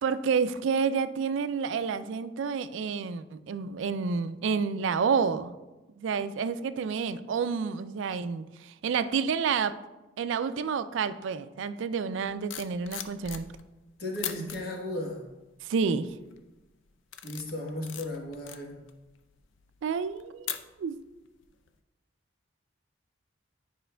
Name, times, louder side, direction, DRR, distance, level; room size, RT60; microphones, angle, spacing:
voice 1, 0.0-5.5 6.0-9.8 10.2-13.5 15.6-16.1 19.8-21.0, right 6 dB, 70° right, 13 dB, 0.3 m, -29 dB
sound 1, 12.2-13.8 14.1-14.6 15.2-15.6 16.0-16.4 16.8-21.1 21.4-21.7, left 10 dB, 75° left, 0.4 m, -40 dB
voice 2, 14.0-15.2 17.2-18.8, left 1 dB, 50° left, 0 dB, 1.2 m, -35 dB
9.9 x 5.0 x 2.2 m, 1.1 s
head